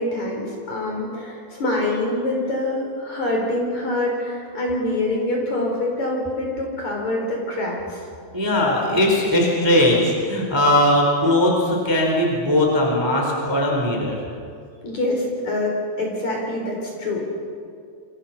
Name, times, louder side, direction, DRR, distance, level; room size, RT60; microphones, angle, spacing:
voice 1, 0.0-8.0 14.8-17.3, left 1 dB, 40° left, 0 dB, 5.1 m, -25 dB
voice 2, 8.3-14.2, left 1 dB, 5° right, -1 dB, 3.5 m, -19 dB
27.5 x 26.0 x 5.8 m, 2.3 s
omnidirectional pair, 5.1 m